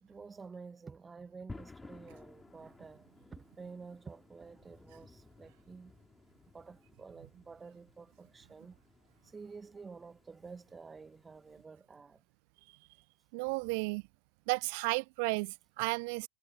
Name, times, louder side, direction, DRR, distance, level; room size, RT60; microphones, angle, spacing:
voice 1, 0.0-5.9 6.5-8.8 9.3-12.2, right 4 dB, 15° right, 1.8 m, -50 dB
sound 1, 1.5-11.7, left 3 dB, 10° left, 4.6 m, -56 dB
voice 2, 13.3-14.0 14.5-16.3, right 31 dB, 45° right, 0.6 m, -33 dB
figure-of-eight pair, 90°, 0 cm